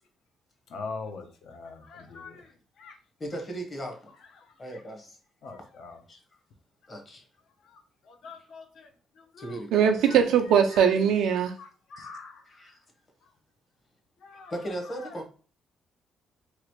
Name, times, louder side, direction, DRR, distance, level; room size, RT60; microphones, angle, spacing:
voice 1, 0.7-2.5 2.8-3.0 4.4-4.5 5.4-6.0 7.6-7.8 8.0-8.9 9.2-9.6 10.1-10.2 10.7-10.9 11.6-12.4 14.2-14.5 15.0-15.1, left 4 dB, 70° left, 0.7 m, -42 dB
voice 2, 3.2-4.1 4.6-5.2 6.1-6.2 6.9-7.2 9.4-10.0 11.1-11.2 12.0-12.1 12.4-12.8 14.5-15.3, right 1 dB, 35° left, 1.1 m, -37 dB
voice 3, 9.7-11.5, right 8 dB, 85° right, 0.4 m, -21 dB
3.1 x 2.5 x 3.0 m
cardioid pair, 90°, 0 cm